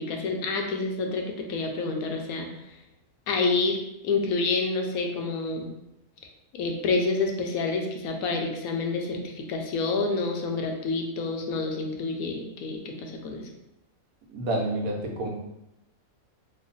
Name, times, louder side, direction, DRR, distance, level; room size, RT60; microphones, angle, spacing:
voice 1, 0.0-2.5 3.3-3.8 4.0-5.7 6.5-13.5, left 3 dB, 80° left, 2 dB, 1.0 m, -28 dB
voice 2, 14.3-15.3, right 1 dB, 75° right, -1 dB, 1.2 m, -28 dB
3.1 x 2.1 x 3.8 m, 0.87 s
omnidirectional pair, 1.5 m